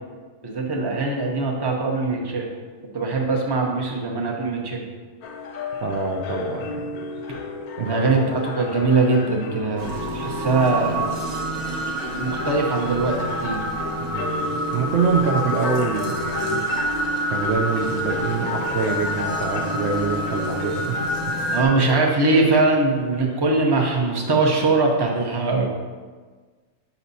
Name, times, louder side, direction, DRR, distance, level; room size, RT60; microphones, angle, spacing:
voice 1, 0.4-2.5 2.9-4.8 7.8-9.9 10.1-11.1 12.2-13.6 21.5-25.7, right 3 dB, 25° right, -1 dB, 0.5 m, -21 dB
sound 1, 5.2-24.8, left 3 dB, 70° left, 1.0 m, -33 dB
voice 2, 5.8-6.8 7.8-8.0 14.0-16.7 17.3-21.0, right 5 dB, 90° right, 0 dB, 0.5 m, -25 dB
sound 2, 9.8-21.6, right 1 dB, 60° right, 1.3 m, -28 dB
8.2 x 5.7 x 2.7 m, 1.4 s
omnidirectional pair, 1.7 m